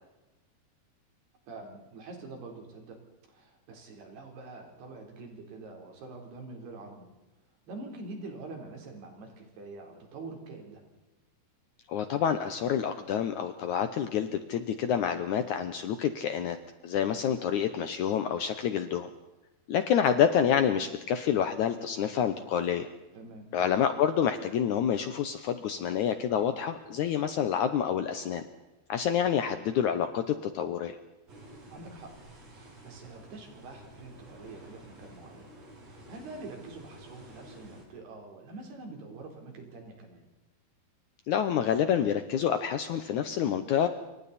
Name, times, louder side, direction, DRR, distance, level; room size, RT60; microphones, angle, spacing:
voice 1, 1.5-3.0 3.3-7.1 7.7-10.8 23.1-23.5 31.7-32.1 32.5-35.5 35.8-40.3, right 3 dB, 85° right, 2 dB, 5.9 m, -45 dB
voice 2, 11.9-16.6 16.8-19.1 19.7-22.9 23.5-28.4 28.9-31.0 41.3-43.9, left 8 dB, 70° left, 9 dB, 1.9 m, -28 dB
sound 1, 31.3-37.8, right 1 dB, 40° right, 6.3 m, -51 dB
27.5 x 24.5 x 4.3 m, 1.0 s
omnidirectional pair, 4.5 m